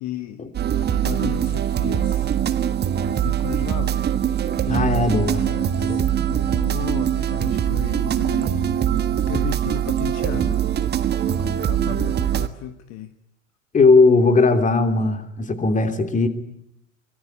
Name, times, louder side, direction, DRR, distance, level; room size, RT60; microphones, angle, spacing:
voice 1, 0.0-0.4 0.8-2.3 3.1-4.0 5.1-8.7 9.1-10.6 11.3-13.1, left 12 dB, 40° left, 10 dB, 1.5 m, -34 dB
sound 1, 0.5-12.5, right 10 dB, 25° right, 1.6 m, -22 dB
voice 2, 4.7-5.5 5.8-6.1 13.7-16.3, left 3 dB, 20° left, 8 dB, 3.1 m, -18 dB
25.0 x 22.5 x 8.4 m, 0.80 s
figure-of-eight pair, 85°, 41 cm